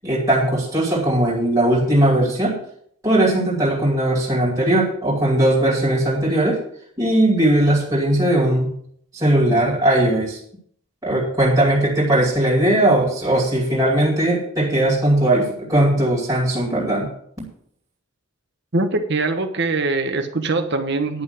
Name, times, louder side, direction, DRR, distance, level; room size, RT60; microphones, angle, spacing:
voice 1, 0.0-2.6 3.0-6.6 7.0-8.7 9.1-10.4 11.0-17.1, right 1 dB, 15° right, -4 dB, 2.4 m, -18 dB
voice 2, 18.7-21.2, right 3 dB, 50° right, 7 dB, 1.2 m, -22 dB
10.5 x 5.7 x 7.9 m, 0.66 s
head